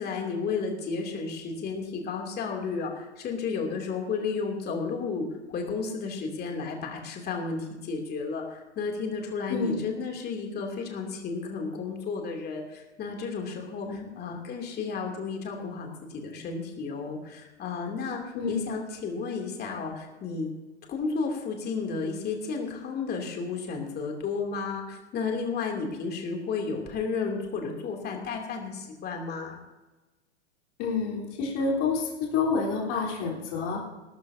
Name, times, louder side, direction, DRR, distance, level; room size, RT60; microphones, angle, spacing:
voice 1, 0.0-18.2 18.5-20.5 20.9-29.6, left 4 dB, 30° left, 1 dB, 2.9 m, -32 dB
voice 2, 9.5-9.8 13.9-14.1 18.3-18.6 30.8-33.8, left 4 dB, 45° left, -3 dB, 3.9 m, -28 dB
18.5 x 13.0 x 2.8 m, 1.1 s
figure-of-eight pair, 100°, 35 cm